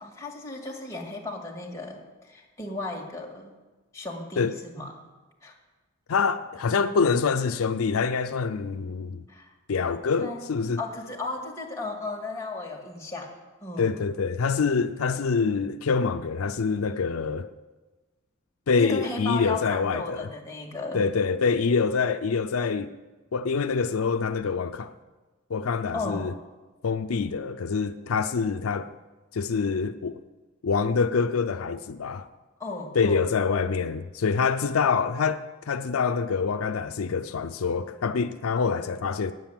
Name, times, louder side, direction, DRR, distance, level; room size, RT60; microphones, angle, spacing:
voice 1, 0.0-3.5 3.9-4.9 5.4-5.5 9.3-9.5 10.2-10.4 10.8-13.9 18.7-21.0 25.9-26.3 32.6-33.3, left 3 dB, 15° left, 2.0 m, -35 dB
voice 2, 6.1-9.2 9.7-10.8 13.8-17.5 18.7-20.3 20.9-22.9 23.3-24.9 25.5-26.3 26.8-28.9 29.3-30.2 30.6-32.3 33.0-39.3, left 5 dB, 85° left, 0.5 m, -25 dB
9.6 x 7.6 x 8.8 m
head